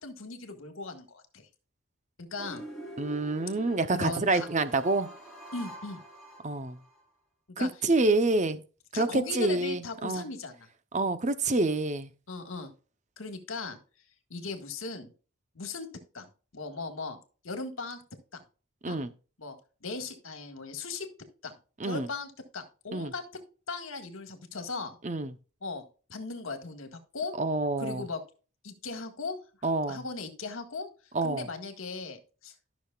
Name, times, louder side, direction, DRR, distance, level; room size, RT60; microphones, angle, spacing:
voice 1, 0.0-1.5 2.2-2.6 3.9-4.5 5.5-6.0 7.6-7.7 8.9-10.7 12.3-12.7 13.2-13.8 14.3-15.1 15.6-15.9 16.1-16.3 16.5-17.2 17.4-18.0 18.3-18.4 18.8-19.0 19.4-21.1 21.4-21.6 21.8-23.2 23.7-25.0 25.6-27.4 27.8-28.2 28.6-29.4 29.9-30.9 31.2-32.5, left 3 dB, 75° left, 1.8 m, -38 dB
sound 1, 2.4-7.0, right 1 dB, ahead, 3.1 m, -45 dB
voice 2, 3.0-5.1 6.4-6.8 7.6-8.6 8.9-10.3 10.9-12.1 18.8-19.1 21.8-22.1 22.9-23.1 25.0-25.3 27.4-28.0 29.6-30.0 31.1-31.5, right 2 dB, 35° right, 0.8 m, -27 dB
13.5 x 6.3 x 2.4 m
head